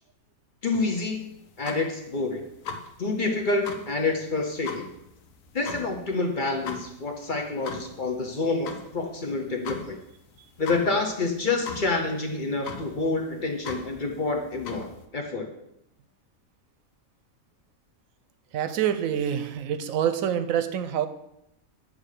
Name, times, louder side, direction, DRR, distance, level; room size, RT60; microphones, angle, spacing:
voice 1, 0.6-1.3 1.6-2.4 3.0-4.9 5.5-10.0 10.6-14.9 15.1-15.5, left 3 dB, 40° left, 2 dB, 0.9 m, -28 dB
sound 1, 0.7-15.1, left 5 dB, 75° left, 1.2 m, -41 dB
voice 2, 18.5-21.1, right 9 dB, 80° right, 11 dB, 1.0 m, -26 dB
8.9 x 3.4 x 6.5 m, 0.82 s
omnidirectional pair, 1.4 m